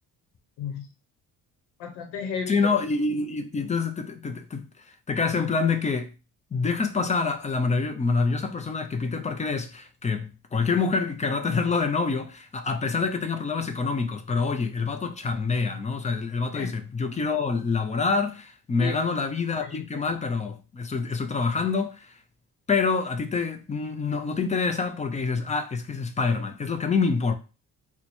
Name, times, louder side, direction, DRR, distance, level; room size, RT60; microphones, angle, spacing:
voice 1, 0.6-0.9 1.8-2.8 16.5-16.7 18.8-19.1 19.6-19.9, left 6 dB, 85° left, 1.0 m, -33 dB
voice 2, 2.5-6.1 6.5-22.1 22.7-27.3, left 4 dB, 20° left, 0.5 m, -26 dB
3.0 x 2.3 x 4.1 m
cardioid pair, 105°, 38 cm